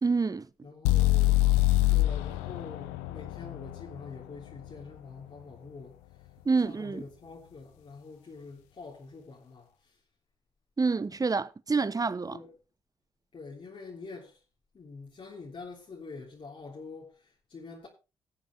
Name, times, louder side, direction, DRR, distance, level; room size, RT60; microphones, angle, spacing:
voice 1, 0.0-0.5 6.4-7.0 10.8-12.4, right 4 dB, 30° right, 1.0 m, -27 dB
voice 2, 0.6-1.4 1.9-6.0 6.6-10.0 12.3-12.5 13.3-14.4 14.7-17.9, left 4 dB, 50° left, 3.3 m, -46 dB
sound 1, 0.8-4.8, left 18 dB, 85° left, 0.7 m, -25 dB
19.0 x 7.2 x 3.4 m
hypercardioid pair, 40°, 12 cm